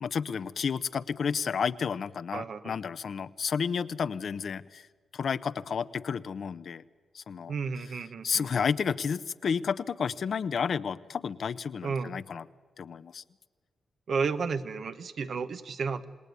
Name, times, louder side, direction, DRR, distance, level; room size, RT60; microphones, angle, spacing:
voice 1, 0.0-4.9 5.1-6.8 7.1-7.5 8.2-12.4 12.8-13.2, left 6 dB, 65° left, 13 dB, 0.8 m, -31 dB
voice 2, 2.3-2.7 7.5-8.6 11.8-12.1 14.1-16.1, right 5 dB, 65° right, 10 dB, 1.2 m, -32 dB
28.0 x 19.0 x 9.6 m, 1.5 s
cardioid pair, 95°, 0 cm